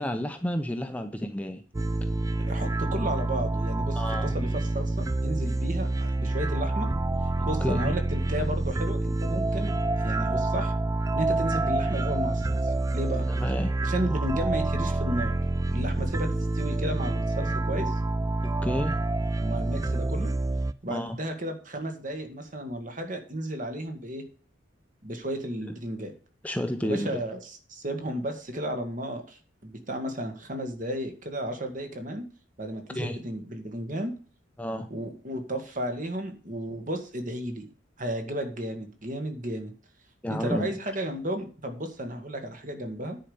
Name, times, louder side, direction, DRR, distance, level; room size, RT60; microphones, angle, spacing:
voice 1, 0.0-1.6 4.0-4.3 7.6-8.0 13.3-13.7 18.4-19.0 20.9-21.2 25.6-25.7 26.4-27.2 32.9-33.2 34.6-34.9 40.2-40.7, equal, 10° left, 6 dB, 0.7 m, -31 dB
sound 1, 1.7-20.7, right 2 dB, 15° right, 0.4 m, -27 dB
voice 2, 2.4-6.9 7.4-9.8 10.0-10.7 11.2-13.3 13.8-15.4 15.7-18.0 19.4-20.3 20.8-24.3 25.0-26.1 26.8-27.4 27.7-32.3 32.6-34.1 34.9-37.7 38.0-39.7 40.3-43.2, right 1 dB, 45° right, 5 dB, 1.9 m, -33 dB
10.5 x 5.0 x 7.0 m, 0.39 s
head